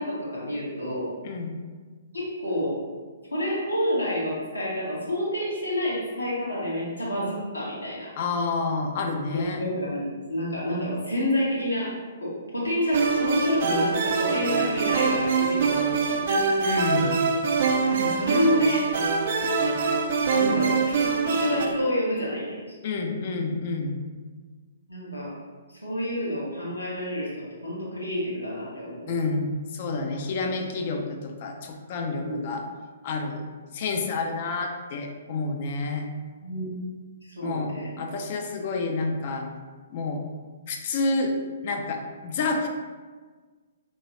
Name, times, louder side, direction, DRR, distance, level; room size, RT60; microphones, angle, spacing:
voice 1, 0.0-1.1 2.1-2.8 3.3-8.1 9.3-16.5 17.9-19.0 20.3-22.7 24.9-25.4 25.7-29.1 32.2-32.5 36.4-36.7 37.2-37.9, equal, 85° left, -7 dB, 1.2 m, -29 dB
voice 2, 8.2-9.6 16.6-17.2 22.8-24.0 29.1-32.6 33.0-36.1 37.4-39.5 39.9-40.2 40.7-41.4 41.6-42.7, left 3 dB, 40° left, 3 dB, 0.4 m, -29 dB
sound 1, 12.9-21.7, right 4 dB, 50° right, 0.4 m, -24 dB
3.0 x 3.0 x 2.8 m, 1.5 s
figure-of-eight pair, 120°, 0 cm